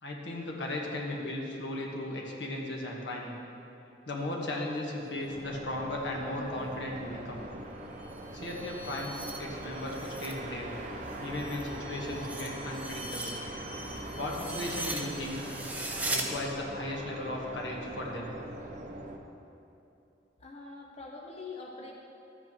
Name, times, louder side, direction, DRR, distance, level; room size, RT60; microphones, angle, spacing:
voice 1, 0.0-3.4 4.0-7.4 8.3-10.7 11.2-13.4 14.2-15.5 16.1-18.4, left 1 dB, 80° left, -1 dB, 1.4 m, -36 dB
sound 1, 5.2-19.2, right 1 dB, 45° right, 0.7 m, -42 dB
sound 2, 8.0-10.4 10.7-16.3, right 2 dB, 10° right, 0.7 m, -40 dB
voice 2, 20.4-21.9, left 3 dB, 35° left, -2 dB, 0.7 m, -44 dB
13.0 x 8.3 x 3.0 m, 2.8 s
head